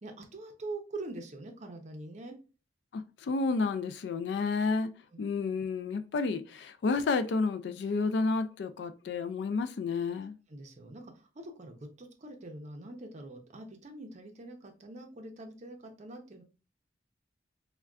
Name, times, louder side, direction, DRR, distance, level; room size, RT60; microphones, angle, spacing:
voice 1, 0.0-2.4 5.1-5.2 10.5-16.4, right 2 dB, 40° right, 0.6 m, -44 dB
voice 2, 2.9-4.9 5.2-10.3, left 4 dB, 75° left, 0.3 m, -31 dB
3.5 x 2.2 x 2.3 m
head